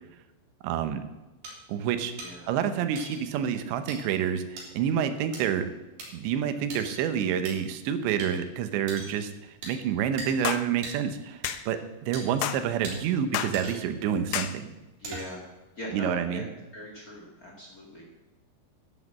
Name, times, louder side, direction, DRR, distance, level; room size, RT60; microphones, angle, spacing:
voice 1, 0.6-1.0 1.7-2.1 2.5-5.7 6.1-14.7 15.9-16.5, right 8 dB, 90° right, 9 dB, 3.2 m, -28 dB
sound 1, 1.4-1.5 2.2-2.3 3.0-3.2 3.9-4.0 4.6-4.7 5.3-5.4 6.0-6.1 6.7-7.0 7.5-7.6 8.2-8.3 8.9-9.1 9.6-9.7 10.2-10.3 10.8-10.9 11.4-11.5 12.1-12.2 12.8-13.0 13.5-13.9 14.4-14.5 15.0-15.4, right 2 dB, 60° right, 5.1 m, -39 dB
sound 2, 10.5-10.7 11.4-11.6 12.4-12.6 13.3-13.6 14.3-14.6, left 12 dB, 80° left, 2.7 m, -30 dB
voice 2, 15.0-15.5 15.8-16.5 16.7-18.0, equal, 40° left, -2 dB, 1.3 m, -41 dB
11.5 x 7.5 x 7.5 m, 1.1 s
omnidirectional pair, 5.0 m